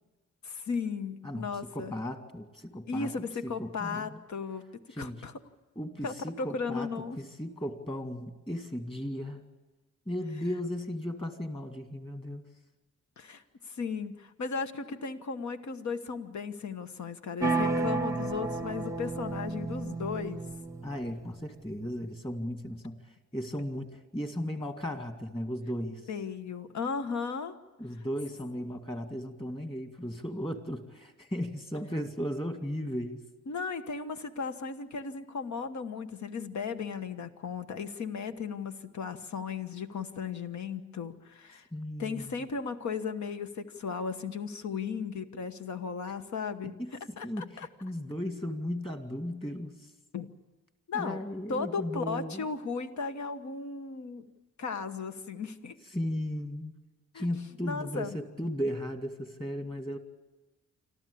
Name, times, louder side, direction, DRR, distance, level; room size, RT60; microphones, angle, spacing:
voice 1, 0.4-1.9 2.9-4.6 5.0-5.3 6.0-7.2 13.2-20.4 26.1-27.5 33.5-41.7 42.0-46.8 47.2-47.7 50.1-50.3 50.9-51.2 51.5-54.2 54.6-55.8 57.1-57.3 57.6-58.2, left 5 dB, 70° left, 9 dB, 1.3 m, -36 dB
voice 2, 1.2-3.1 3.4-4.2 4.9-5.3 5.8-9.4 10.1-12.4 20.8-23.0 23.3-26.0 27.8-33.3 41.7-42.5 46.6-46.9 47.2-49.9 50.9-52.5 55.9-56.7 57.2-60.0, equal, 20° left, 7 dB, 2.3 m, -36 dB
sound 1, 17.4-21.2, right 3 dB, 10° right, 0.8 m, -32 dB
26.0 x 14.0 x 8.6 m, 1.2 s
wide cardioid pair, 110°, 29 cm